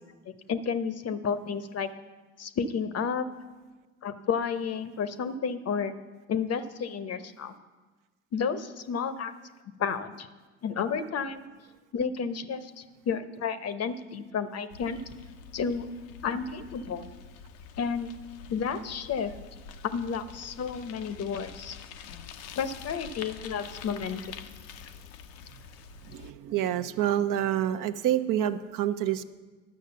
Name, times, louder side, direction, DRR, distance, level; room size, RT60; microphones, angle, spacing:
voice 1, 0.5-1.9 2.4-3.3 4.0-5.9 6.3-7.5 8.3-9.3 9.8-10.3 10.6-11.5 11.9-15.0 15.5-15.9 16.2-17.1 17.8-18.1 18.5-19.3 19.8-21.8 22.6-24.3, left 6 dB, 40° left, 12 dB, 0.8 m, -31 dB
Bicycle, 14.7-26.3, left 7 dB, 75° left, 0.8 m, -46 dB
voice 2, 26.0-29.2, right 11 dB, 60° right, 10 dB, 0.7 m, -27 dB
10.5 x 6.4 x 6.8 m, 1.3 s
hypercardioid pair, 65°, 37 cm